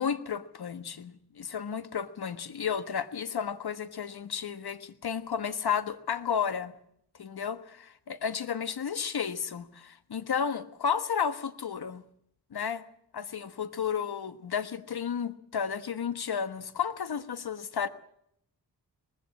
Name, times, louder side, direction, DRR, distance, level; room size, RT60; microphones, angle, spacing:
voice 1, 0.0-6.7 7.2-12.0 12.5-12.8 13.1-17.9, left 7 dB, 65° left, 13 dB, 1.4 m, -32 dB
19.0 x 15.5 x 8.7 m, 0.72 s
cardioid pair, 65°, 40 cm